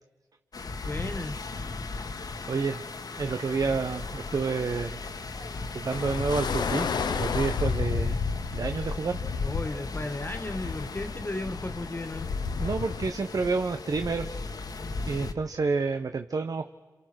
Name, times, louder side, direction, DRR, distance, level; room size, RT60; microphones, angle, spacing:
sound 1, 0.5-15.3, left 3 dB, 60° left, 1.5 m, -38 dB
voice 1, 0.8-1.4 9.4-12.3, left 2 dB, 30° left, 7 dB, 1.9 m, -35 dB
voice 2, 2.5-2.8 3.2-5.0 5.7-6.9 7.1-8.2 8.5-9.2 12.6-14.3 15.1-16.7, right 4 dB, 60° right, 8 dB, 0.9 m, -29 dB
sound 2, 5.9-13.1, left 5 dB, 80° left, 1.0 m, -31 dB
28.0 x 27.5 x 6.3 m, 1.3 s
cardioid pair, 40°, 7 cm